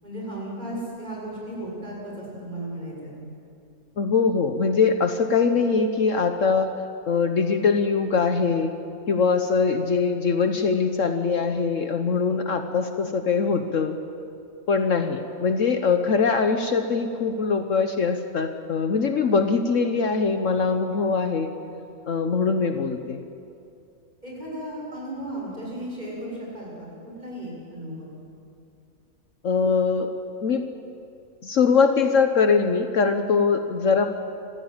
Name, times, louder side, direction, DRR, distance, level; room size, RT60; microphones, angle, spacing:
voice 1, 0.0-3.2 24.2-26.9 27.2-28.1, right 1 dB, 30° right, -4 dB, 7.0 m, -35 dB
voice 2, 4.0-6.7 7.1-8.7 9.1-14.0 14.7-21.5 22.1-23.2 29.4-30.1 30.4-30.6 31.4-34.1, left 5 dB, 60° left, 7 dB, 1.3 m, -22 dB
26.0 x 15.5 x 8.9 m, 2.6 s
omnidirectional pair, 1.6 m